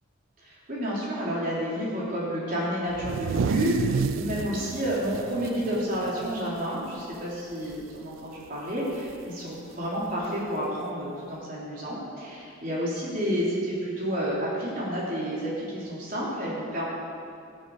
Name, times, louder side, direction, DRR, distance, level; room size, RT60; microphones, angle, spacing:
voice 1, 0.4-16.8, equal, 45° right, -6 dB, 3.7 m, -30 dB
sound 1, 2.9-6.7 7.0-7.1 7.5-8.0 9.1-9.2 10.2-10.3, right 5 dB, 75° right, 0.4 m, -30 dB
13.5 x 12.5 x 5.0 m, 2.4 s
head